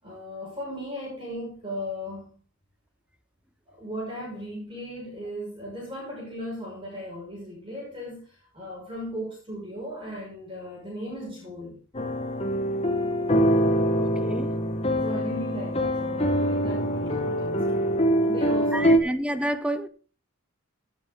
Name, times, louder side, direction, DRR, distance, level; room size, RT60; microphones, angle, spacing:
voice 1, 0.0-2.4 3.7-11.8 15.0-19.0, equal, 25° right, 5.9 m, -37 dB
sound 1, 11.9-19.0, equal, 30° left, 1.3 m, -24 dB
voice 2, 14.0-14.6 18.7-19.9, right 1 dB, 5° right, 0.6 m, -30 dB
17.0 x 8.2 x 3.8 m
head